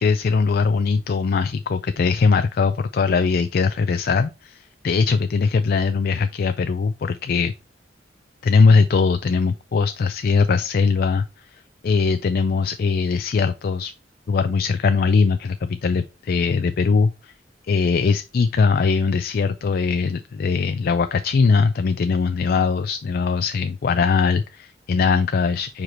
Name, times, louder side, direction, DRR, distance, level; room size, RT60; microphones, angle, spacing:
voice 1, 0.0-7.5 8.4-11.3 11.5-13.9 14.3-17.3 17.7-25.8, left 5 dB, 55° left, 0.4 m, -20 dB
4.9 x 4.6 x 4.3 m
head